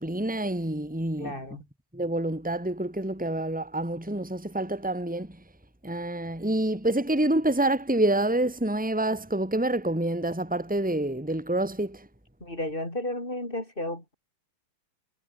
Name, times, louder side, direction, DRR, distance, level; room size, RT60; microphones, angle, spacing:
voice 1, 0.0-1.6 1.9-5.4 5.8-12.1, right 1 dB, 5° right, 3.6 m, -27 dB
voice 2, 1.2-1.6 12.4-14.1, left 1 dB, 25° left, 7.7 m, -33 dB
omnidirectional pair, 2.3 m